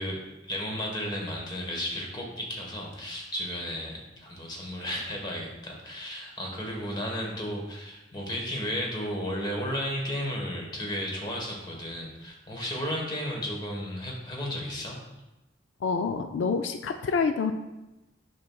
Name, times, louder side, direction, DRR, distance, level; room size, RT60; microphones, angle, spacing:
voice 1, 0.0-15.0, equal, 25° left, 0 dB, 1.2 m, -34 dB
voice 2, 15.8-17.5, left 5 dB, 85° left, 7 dB, 0.4 m, -27 dB
8.6 x 5.8 x 2.3 m, 1.0 s
head